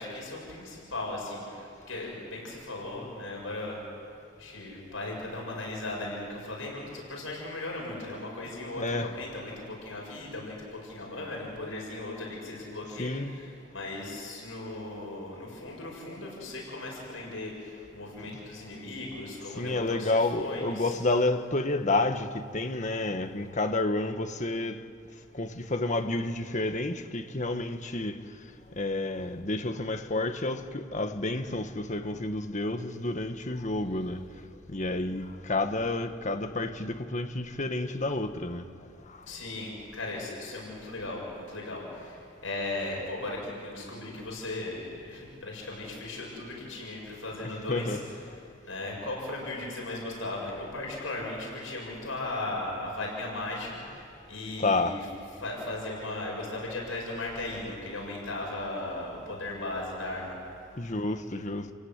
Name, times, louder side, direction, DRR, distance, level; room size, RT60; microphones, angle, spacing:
voice 1, 0.0-3.8 4.4-21.0 39.3-48.0 48.6-55.1 55.4-60.4, left 2 dB, 80° left, 7.6 m, -37 dB
voice 2, 8.8-9.1 13.0-13.3 19.6-24.8 25.4-28.2 28.8-34.2 34.7-38.6 47.7-48.0 54.6-55.0 60.8-61.7, left 2 dB, 40° left, 1.4 m, -30 dB
29.5 x 17.0 x 9.8 m
head